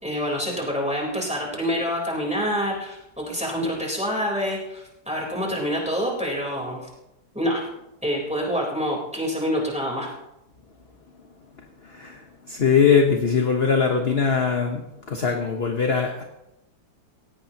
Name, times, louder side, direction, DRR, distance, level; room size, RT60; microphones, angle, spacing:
voice 1, 0.0-6.8 7.3-7.7 8.0-10.1, equal, 5° right, -2 dB, 4.0 m, -26 dB
voice 2, 11.8-14.8 15.1-16.2, left 6 dB, 40° left, 3 dB, 1.3 m, -21 dB
18.0 x 17.0 x 3.0 m, 0.90 s
omnidirectional pair, 1.8 m